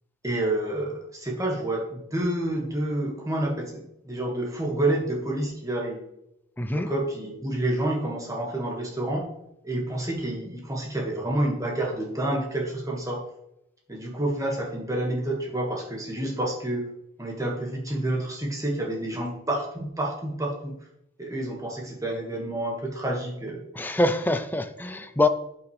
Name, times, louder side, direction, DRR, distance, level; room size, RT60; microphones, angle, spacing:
voice 1, 0.2-6.0 6.7-9.3 9.6-13.2 13.9-16.8 17.2-20.8 21.2-23.6, right 1 dB, 15° right, 1.8 m, -29 dB
voice 2, 6.6-6.9 23.7-25.3, left 2 dB, 10° left, 0.5 m, -24 dB
11.5 x 6.0 x 3.3 m
head